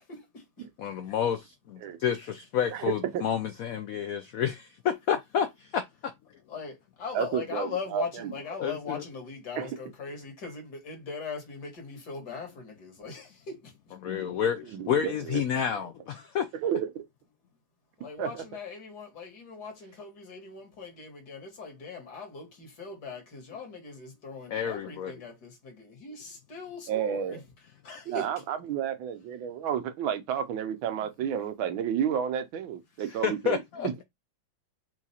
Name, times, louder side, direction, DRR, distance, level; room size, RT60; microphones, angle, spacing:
voice 1, 0.0-0.4 4.1-4.2 6.5-13.9 18.0-27.4 27.8-28.3 31.2-31.3, left 5 dB, 60° left, 2.0 m, -40 dB
voice 2, 0.8-2.2 2.5-5.8 8.6-9.0 14.0-16.4 24.5-25.1 33.1-33.9, left 8 dB, 80° left, 0.7 m, -29 dB
voice 3, 2.7-3.2 7.1-8.3 9.6-9.8 14.7-15.4 16.6-17.0 18.2-18.4 26.9-27.4 28.1-33.6 33.8-34.0, right 9 dB, 90° right, 1.6 m, -31 dB
4.5 x 2.4 x 4.1 m
omnidirectional pair, 2.1 m